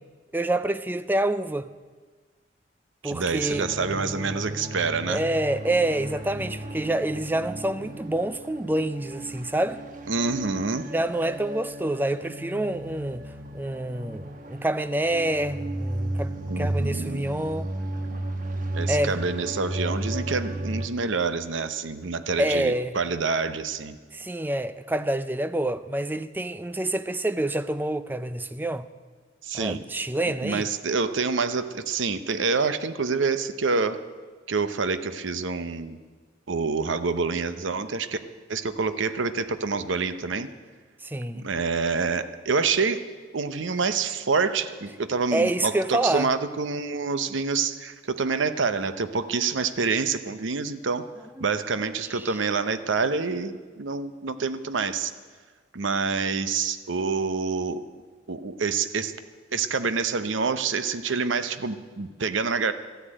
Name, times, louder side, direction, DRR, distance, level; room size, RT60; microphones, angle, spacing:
voice 1, 0.3-1.7 3.0-3.7 5.1-9.8 10.8-17.7 18.9-19.1 22.4-23.0 24.1-28.9 29.5-30.7 41.0-41.5 45.3-46.3 51.4-51.5 52.2-52.3, right 1 dB, 10° right, 0.4 m, -27 dB
voice 2, 3.0-5.2 10.1-10.9 16.5-17.3 18.7-24.0 29.4-29.8 30.4-34.0 34.5-36.0 36.5-38.2 38.5-40.5 41.3-43.0 43.3-51.0 51.4-55.1 55.7-57.9 58.3-59.1 59.5-62.7, right 4 dB, 75° right, 0.7 m, -27 dB
sound 1, 3.5-20.9, right 1 dB, 45° right, 1.1 m, -34 dB
13.5 x 10.0 x 8.8 m
head